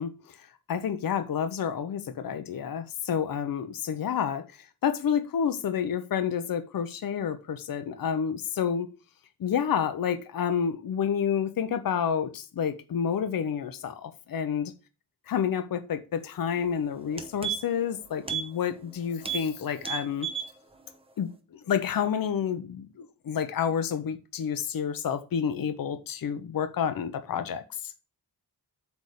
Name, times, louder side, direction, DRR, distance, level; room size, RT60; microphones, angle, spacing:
voice 1, 0.0-8.9 9.4-14.7 15.3-20.3 21.2-27.9, left 8 dB, 60° left, 0.8 m, -29 dB
sound 1, 16.6-16.7 17.0-17.9 18.2-18.5 18.8-18.9 19.2-19.5 19.8-20.5 20.9-21.0, right 8 dB, 15° right, 0.9 m, -33 dB
8.2 x 3.5 x 6.5 m
wide cardioid pair, 170°, 39 cm